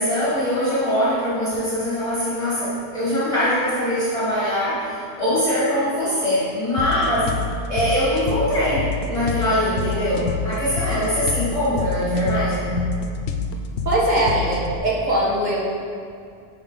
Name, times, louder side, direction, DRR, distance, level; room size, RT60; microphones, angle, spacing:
voice 1, 0.0-7.3 7.7-12.8, equal, 30° left, -11 dB, 2.0 m, -22 dB
sound 1, 6.8-14.8, left 4 dB, 85° left, 0.8 m, -28 dB
voice 2, 13.8-15.6, right 1 dB, 45° right, -6 dB, 1.6 m, -21 dB
7.0 x 5.5 x 4.0 m, 2.3 s
omnidirectional pair, 1.1 m